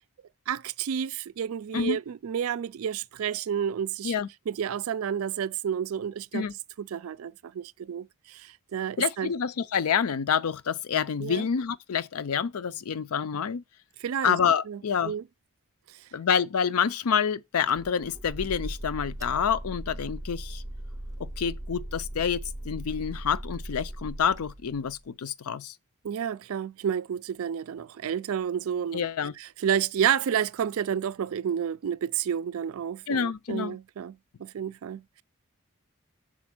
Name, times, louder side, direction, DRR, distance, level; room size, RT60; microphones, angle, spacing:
voice 1, 0.5-4.1 4.5-6.5 6.8-9.3 11.2-11.5 14.0-14.4 14.7-15.2 26.0-29.0 29.4-35.2, right 8 dB, 75° right, 0.4 m, -30 dB
voice 2, 9.0-13.6 14.2-15.1 16.1-20.6 21.2-25.7 28.9-29.3 33.1-33.8, left 7 dB, 90° left, 0.5 m, -28 dB
sound 1, 17.7-25.1, right 1 dB, 15° right, 0.5 m, -38 dB
6.2 x 4.3 x 5.9 m
head